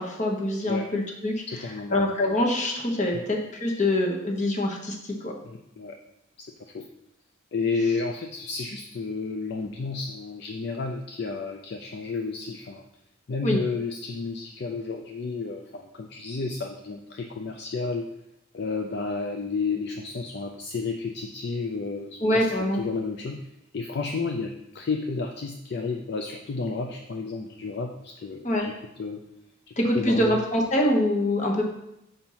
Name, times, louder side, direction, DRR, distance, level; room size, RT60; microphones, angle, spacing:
voice 1, 0.0-1.3 1.9-5.3 13.4-13.6 22.2-22.8 28.4-28.6 29.8-31.6, left 1 dB, 35° left, 1 dB, 1.0 m, -24 dB
voice 2, 1.5-2.0 3.1-3.2 5.4-6.0 6.4-6.9 7.5-12.9 13.3-18.1 18.5-22.5 22.8-23.4 23.7-29.2 29.7-30.4, left 4 dB, 55° left, 3 dB, 0.4 m, -31 dB
5.2 x 4.5 x 5.5 m, 0.83 s
head